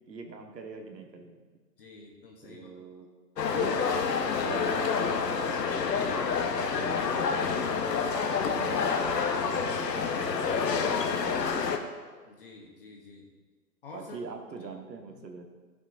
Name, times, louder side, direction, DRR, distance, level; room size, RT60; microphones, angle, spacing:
voice 1, 0.1-1.4 2.4-3.1 3.5-3.7 4.2-5.9 6.6-8.0 8.4-11.8 13.9-15.5, right 4 dB, 85° right, 3 dB, 1.5 m, -43 dB
voice 2, 1.8-2.7 12.3-13.2 13.8-14.2 14.6-14.7 15.2-15.4, left 3 dB, 35° left, 0 dB, 0.9 m, -49 dB
sound 1, 3.4-11.8, left 5 dB, 75° left, 1.1 m, -28 dB
14.0 x 6.2 x 2.6 m, 1.4 s
hypercardioid pair, 160°, 49 cm